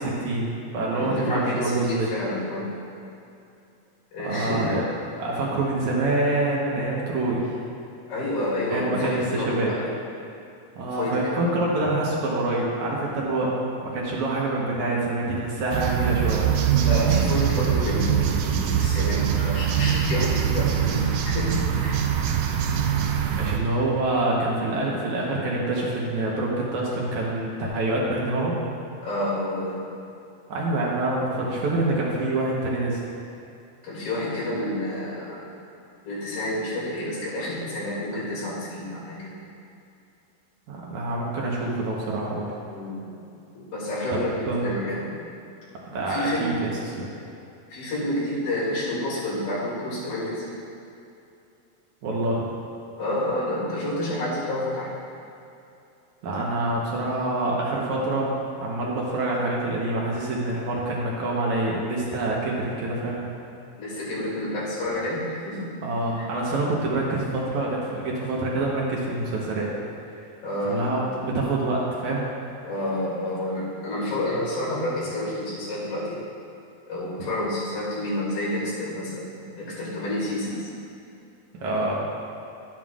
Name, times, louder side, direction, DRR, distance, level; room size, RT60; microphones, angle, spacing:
voice 1, 0.0-2.1 4.2-4.8 5.2-7.4 8.7-9.7 10.8-13.5 13.8-16.4 23.3-28.5 30.5-33.0 40.7-42.5 44.1-44.6 45.9-46.9 52.0-52.5 56.2-58.3 58.6-63.2 65.8-69.7 70.6-72.3 81.5-82.0, right 2 dB, 65° right, -4 dB, 2.2 m, -26 dB
voice 2, 0.9-2.7 4.1-4.8 8.1-9.9 10.8-11.5 16.8-22.0 29.0-29.8 33.8-35.4 36.0-39.4 42.7-43.1 43.5-45.1 46.0-46.6 47.7-50.5 53.0-54.9 63.8-65.8 66.2-66.3 70.4-70.8 72.6-76.2 76.9-80.7, left 1 dB, 90° left, -7 dB, 4.2 m, -29 dB
sound 1, 15.7-23.6, right 8 dB, 90° right, 2.4 m, -23 dB
12.0 x 9.2 x 2.5 m, 2.7 s
omnidirectional pair, 4.1 m